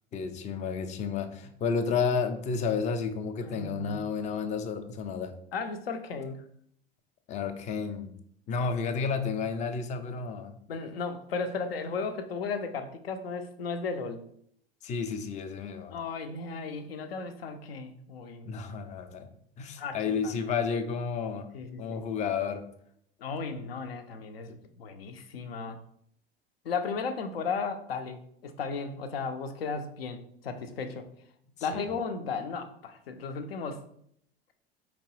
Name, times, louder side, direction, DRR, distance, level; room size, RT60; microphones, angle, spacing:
voice 1, 0.1-5.3 7.3-8.1 8.5-10.6 14.8-15.9 18.5-19.3 19.6-21.5 21.8-22.6 24.5-24.6 31.6-31.9, left 5 dB, 25° left, 8 dB, 0.4 m, -31 dB
voice 2, 3.4-4.0 5.5-6.4 10.7-14.3 15.9-18.7 19.8-20.3 21.5-22.1 23.2-25.8 26.6-31.1 31.6-33.8, left 4 dB, 70° left, 8 dB, 0.6 m, -35 dB
4.4 x 2.9 x 3.0 m, 0.68 s
figure-of-eight pair, 75°, 31 cm